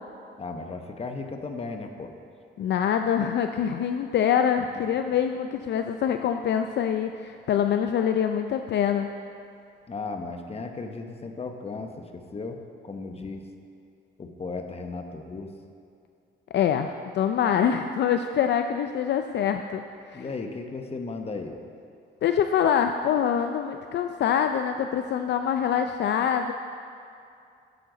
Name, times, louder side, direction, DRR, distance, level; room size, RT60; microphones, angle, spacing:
voice 1, 0.4-2.1 9.9-12.6 12.8-13.4 14.2-15.5 20.1-21.6, left 3 dB, 30° left, 5 dB, 1.0 m, -35 dB
voice 2, 2.6-9.1 16.5-19.8 20.1-20.2 22.2-26.5, left 8 dB, 60° left, 7 dB, 0.5 m, -25 dB
13.0 x 7.7 x 3.9 m, 2.5 s
cardioid pair, 90°, 20 cm